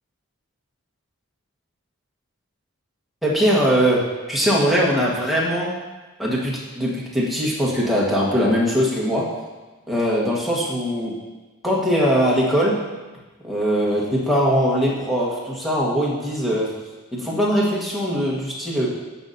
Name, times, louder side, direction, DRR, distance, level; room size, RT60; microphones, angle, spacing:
voice 1, 3.2-5.7 6.2-9.3 9.9-11.2 11.6-12.9 13.4-16.8 17.1-19.0, equal, ahead, -6 dB, 1.4 m, -21 dB
13.0 x 5.7 x 2.7 m, 1.2 s
head